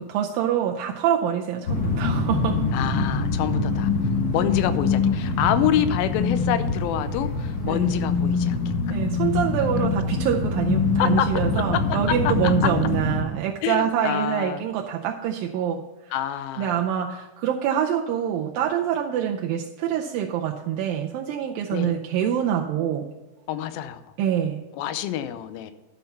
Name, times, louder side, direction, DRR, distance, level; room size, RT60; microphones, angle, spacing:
voice 1, 0.0-2.6 7.6-7.9 8.9-16.1 16.6-23.1 24.2-24.6, right 9 dB, 80° right, 1 dB, 2.4 m, -25 dB
sound 1, 1.6-13.2, left 4 dB, 45° left, 1.5 m, -24 dB
voice 2, 2.7-3.9 4.3-9.0 9.6-10.2 11.0-12.7 13.6-14.6 16.1-16.8 21.7-21.9 23.5-24.0 24.8-25.7, left 11 dB, 90° left, 12 dB, 2.5 m, -27 dB
12.0 x 5.8 x 5.5 m, 1.1 s
omnidirectional pair, 4.1 m